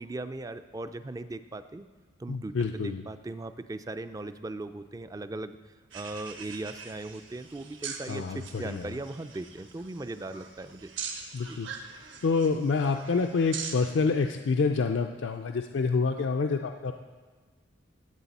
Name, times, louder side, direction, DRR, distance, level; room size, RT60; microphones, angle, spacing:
voice 1, 0.0-1.9 2.2-5.6 5.9-10.9 11.5-11.6, right 2 dB, 20° right, 11 dB, 0.3 m, -38 dB
voice 2, 2.3-3.0 8.1-8.9 11.3-11.7 12.2-16.9, left 4 dB, 65° left, 5 dB, 0.4 m, -27 dB
sound 1, 5.9-13.9, right 6 dB, 70° right, 1.2 m, -43 dB
14.0 x 8.2 x 4.1 m, 1.4 s
head